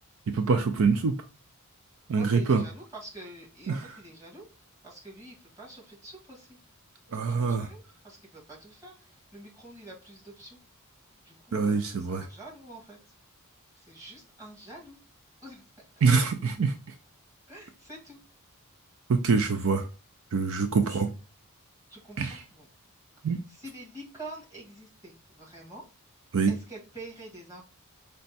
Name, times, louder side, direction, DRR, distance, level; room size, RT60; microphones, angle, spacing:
voice 1, 0.3-1.1 2.1-2.6 3.7-3.9 7.1-7.7 11.5-12.3 16.0-16.7 19.1-19.9 20.3-21.1 22.2-22.4 23.2-23.4 26.3-26.5, right 5 dB, 65° right, 8 dB, 0.4 m, -25 dB
voice 2, 2.1-4.4 4.8-6.6 7.1-10.6 11.3-13.0 13.8-15.0 15.4-15.6 17.5-18.2 19.4-19.6 20.8-21.0 21.9-22.7 23.3-25.8 26.5-27.6, right 2 dB, 15° right, -5 dB, 1.8 m, -46 dB
5.2 x 2.2 x 4.0 m, 0.33 s
head